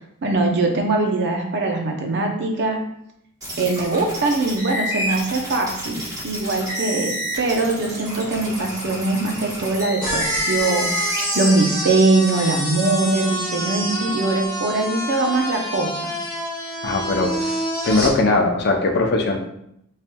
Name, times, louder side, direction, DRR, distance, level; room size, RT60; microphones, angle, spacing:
voice 1, 0.2-2.8 3.6-7.1 7.4-16.2, right 2 dB, 55° right, 2 dB, 0.6 m, -22 dB
sound 1, 3.4-11.5, equal, 15° right, 1.0 m, -29 dB
sound 2, 10.0-18.1, equal, 20° left, 1.3 m, -27 dB
voice 2, 16.8-17.3 17.8-19.4, left 2 dB, 50° left, 2 dB, 0.6 m, -19 dB
4.2 x 3.2 x 2.2 m, 0.75 s
head